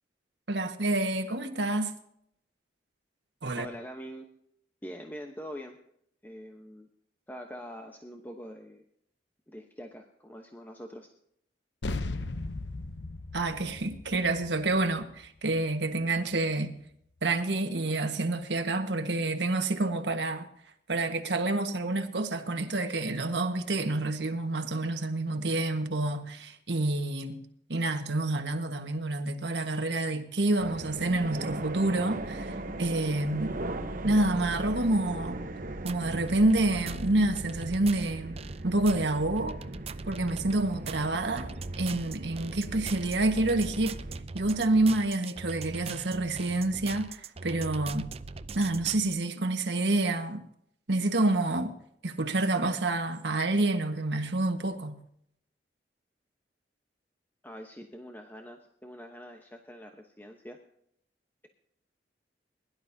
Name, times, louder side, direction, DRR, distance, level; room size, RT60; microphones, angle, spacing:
voice 1, 0.5-1.9 3.4-3.7 13.3-16.7 17.2-20.5 20.9-27.4 27.7-33.5 34.0-35.4 35.8-38.4 38.6-39.6 40.1-44.0 44.3-48.1 48.5-50.4 50.9-51.7 52.0-55.0, right 2 dB, 75° right, 1.5 m, -28 dB
voice 2, 3.6-4.3 4.8-5.8 6.2-6.9 7.3-8.8 9.5-11.1 57.4-60.6, equal, 10° left, 1.0 m, -44 dB
sound 1, 11.8-16.6, left 2 dB, 80° left, 0.8 m, -38 dB
sound 2, 30.6-44.2, right 2 dB, 50° right, 1.1 m, -39 dB
sound 3, 35.6-49.2, right 4 dB, 35° right, 0.6 m, -42 dB
22.0 x 11.5 x 2.8 m
head